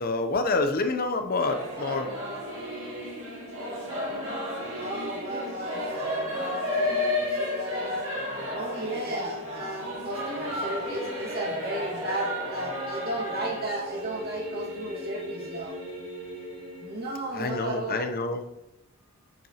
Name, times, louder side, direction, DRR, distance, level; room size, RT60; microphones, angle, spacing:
voice 1, 0.0-2.1 17.3-18.4, left 3 dB, 45° left, 7 dB, 0.7 m, -27 dB
Singing / Musical instrument, 1.4-17.7, left 1 dB, 70° right, 2.3 m, -33 dB
voice 2, 4.7-8.0 8.5-15.7 16.8-18.1, right 1 dB, 50° right, -3 dB, 1.9 m, -34 dB
8.6 x 6.5 x 2.9 m, 0.92 s
head